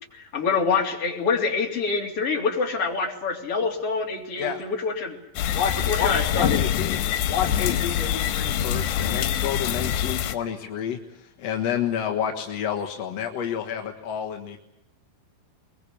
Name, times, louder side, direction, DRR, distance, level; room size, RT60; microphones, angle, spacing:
voice 1, 0.0-5.2 5.8-6.6, left 4 dB, 40° left, 1 dB, 3.8 m, -26 dB
sound 1, 5.4-10.4, left 10 dB, 90° left, 3.3 m, -25 dB
voice 2, 5.5-7.0 7.3-14.6, left 8 dB, 60° left, 3 dB, 1.9 m, -29 dB
22.0 x 22.0 x 8.4 m, 0.81 s
omnidirectional pair, 4.7 m